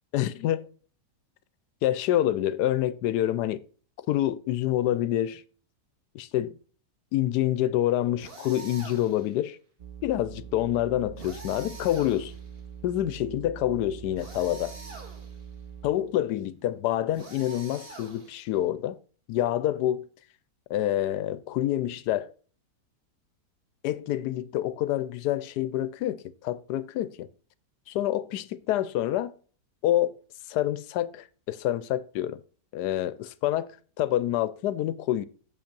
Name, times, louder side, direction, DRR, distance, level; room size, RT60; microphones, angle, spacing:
voice 1, 0.1-0.7 1.8-3.6 4.1-5.4 6.1-6.6 7.1-9.6 10.0-12.3 12.8-14.8 15.8-19.0 19.3-20.1 20.7-22.3 23.8-27.3 27.9-29.3 29.8-30.1 30.5-32.4 32.7-35.3, left 13 dB, 75° left, 1.1 m, -27 dB
sound 1, 8.2-9.3 11.2-12.6 14.2-15.5 17.1-18.6, right 3 dB, 35° right, 1.9 m, -45 dB
sound 2, 9.8-16.3, right 8 dB, 75° right, 0.4 m, -44 dB
7.6 x 5.3 x 5.2 m
omnidirectional pair, 1.8 m